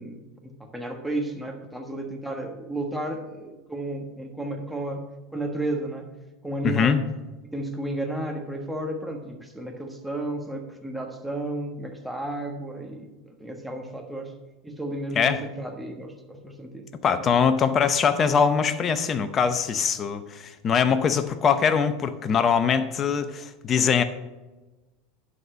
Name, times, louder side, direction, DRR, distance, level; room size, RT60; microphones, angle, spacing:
voice 1, 0.0-5.0 5.3-6.1 6.4-7.0 7.4-14.3 14.6-17.2, right 1 dB, ahead, 1 dB, 1.3 m, -33 dB
voice 2, 6.6-7.0 15.1-15.4 17.0-24.0, left 6 dB, 35° left, 11 dB, 0.7 m, -22 dB
11.0 x 4.2 x 6.3 m, 1.1 s
hypercardioid pair, 95°, 0 cm